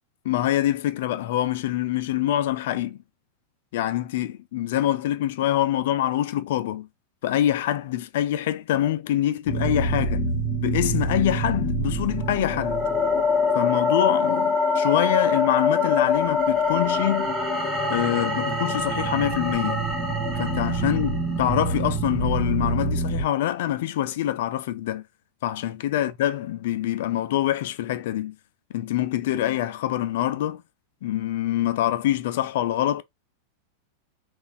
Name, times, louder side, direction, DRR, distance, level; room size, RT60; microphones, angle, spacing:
voice 1, 0.2-3.0 3.7-6.9 7.2-10.3 10.6-12.8 13.5-17.3 17.9-19.8 20.4-25.0 25.4-28.3 28.7-30.6 31.0-33.0, left 12 dB, 55° left, 0.4 m, -25 dB
sound 1, 9.5-23.3, left 2 dB, ahead, 1.2 m, -24 dB
3.8 x 2.5 x 2.4 m
figure-of-eight pair, 90°, 0 cm